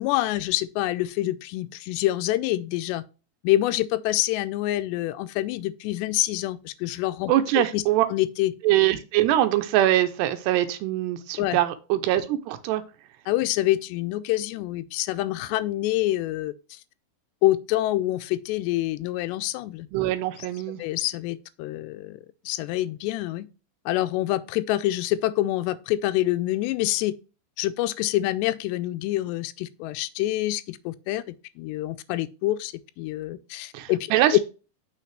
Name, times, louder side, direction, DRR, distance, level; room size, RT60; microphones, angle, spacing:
voice 1, 0.0-3.0 3.4-7.3 7.7-7.8 8.1-8.5 11.4-11.6 13.3-16.8 17.4-19.9 20.8-22.2 22.5-23.5 23.9-27.1 27.6-34.1 34.3-34.4, left 15 dB, 85° left, 2.7 m, -26 dB
voice 2, 7.3-8.1 8.6-12.8 19.9-20.8 33.7-34.4, right 13 dB, 80° right, 2.8 m, -23 dB
6.4 x 5.8 x 3.3 m
omnidirectional pair, 4.9 m